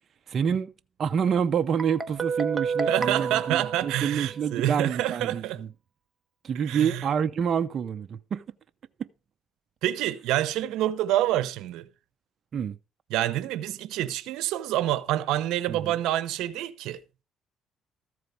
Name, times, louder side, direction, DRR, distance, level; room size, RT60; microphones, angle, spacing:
voice 1, 0.3-0.7 1.0-5.7 6.4-8.4 9.0-9.1 12.5-12.8 15.7-15.9, right 7 dB, 50° right, 0.7 m, -27 dB
Guitar, 1.8-4.6, right 5 dB, 20° right, 1.2 m, -30 dB
voice 2, 2.9-5.6 6.6-7.0 9.8-11.9 13.1-17.0, right 13 dB, 85° right, 0.8 m, -27 dB
14.0 x 4.7 x 6.8 m
cardioid pair, 105°, 0 cm